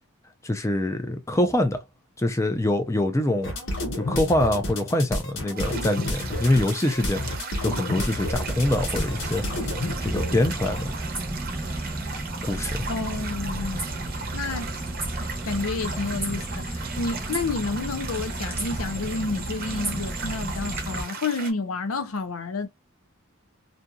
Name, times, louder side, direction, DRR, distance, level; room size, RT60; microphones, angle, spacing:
voice 1, 0.4-1.8 2.2-3.5 3.9-7.3 7.6-9.7 10.0-10.9 12.4-12.8, left 1 dB, 15° left, 0.4 m, -24 dB
sound 1, 3.4-10.8, left 1 dB, 60° left, 1.0 m, -30 dB
sound 2, 5.6-21.5, right 5 dB, 40° right, 0.7 m, -38 dB
sound 3, 8.3-21.0, right 1 dB, 10° right, 0.9 m, -32 dB
voice 2, 12.9-13.9 14.3-14.7 15.2-22.7, left 3 dB, 80° left, 0.6 m, -30 dB
2.7 x 2.6 x 2.3 m
head